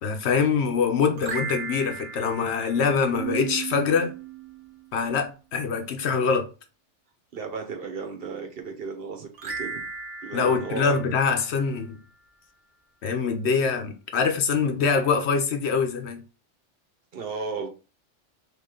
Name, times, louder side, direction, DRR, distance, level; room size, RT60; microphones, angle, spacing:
voice 1, 0.0-4.1 4.9-6.4 10.3-12.0 13.0-16.2, left 5 dB, 70° left, 1.0 m, -24 dB
sound 1, 1.1-3.6 9.3-12.0, right 4 dB, 90° right, 1.2 m, -37 dB
Keyboard (musical), 3.1-5.0, right 18 dB, ahead, 0.7 m, -35 dB
voice 2, 7.3-9.8 10.2-10.9 17.1-17.7, right 5 dB, 55° right, 1.0 m, -35 dB
3.7 x 3.1 x 3.6 m
omnidirectional pair, 1.2 m